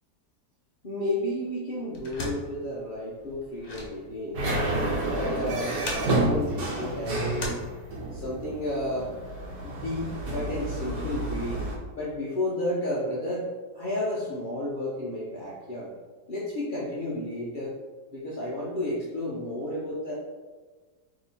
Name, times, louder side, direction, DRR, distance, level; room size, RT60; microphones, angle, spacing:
voice 1, 0.8-4.4 5.1-7.6 8.1-9.1 9.6-11.6 11.9-13.5 13.7-15.9 16.3-17.8 18.1-20.1, left 1 dB, 70° left, -6 dB, 0.4 m, -32 dB
sound 1, 1.9-8.3, left 2 dB, 55° left, 0.8 m, -40 dB
sound 2, 4.3-11.7, right 1 dB, 70° right, 1.3 m, -30 dB
2.9 x 2.9 x 3.9 m, 1.4 s
omnidirectional pair, 1.8 m